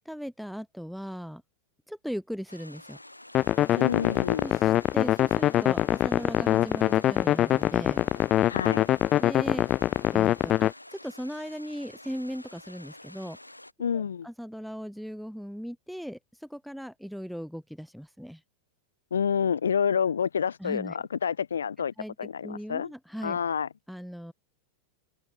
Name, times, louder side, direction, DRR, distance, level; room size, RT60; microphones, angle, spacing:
voice 1, 0.0-1.4 1.9-3.0 3.7-4.1 4.4-8.0 9.2-9.7 10.1-13.4 13.9-18.4 20.6-21.0 22.0-23.4 23.9-24.3, equal, ahead, 1.7 m, -38 dB
sound 1, 2.5-13.7, left 1 dB, 85° left, 5.2 m, -49 dB
sound 2, 3.3-10.7, left 13 dB, 30° left, 0.5 m, -24 dB
voice 2, 3.8-4.5 8.5-8.9 13.8-14.3 19.1-21.9 22.2-22.9 23.2-23.7, left 7 dB, 70° left, 1.0 m, -28 dB
open air
figure-of-eight pair, 90°, 0 cm